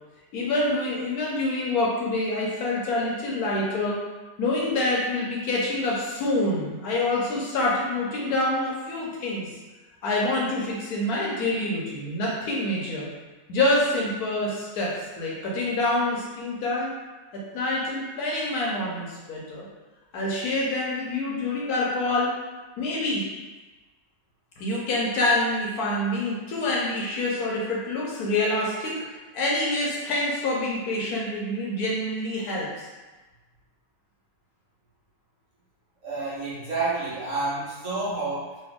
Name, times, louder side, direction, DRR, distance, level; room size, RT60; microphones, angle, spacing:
voice 1, 0.3-4.0 4.4-9.5 10.0-13.1 13.5-16.9 17.3-19.7 20.1-22.4 22.8-23.2 24.6-29.0 29.3-32.9, left 2 dB, 70° left, -4 dB, 1.1 m, -26 dB
voice 2, 36.0-38.6, right 3 dB, 55° right, -8 dB, 1.3 m, -29 dB
3.2 x 2.5 x 3.5 m, 1.2 s
omnidirectional pair, 1.8 m